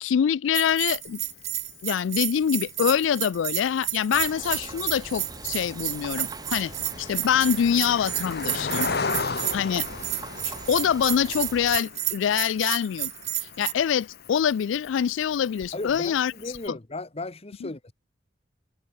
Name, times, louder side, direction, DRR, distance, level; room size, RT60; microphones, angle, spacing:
voice 1, 0.0-1.2 1.8-6.7 7.0-8.9 9.5-9.9 10.5-13.1 13.6-16.3 17.6-17.7, left 8 dB, 75° left, 0.3 m, -25 dB
Bell, 0.5-13.7, right 13 dB, 35° right, 1.2 m, -31 dB
Cricket, 0.7-16.7, left 4 dB, 55° left, 1.3 m, -38 dB
sound 1, 4.1-11.8, right 3 dB, 20° right, 0.6 m, -42 dB
voice 2, 15.7-17.9, left 2 dB, 30° left, 1.0 m, -36 dB
head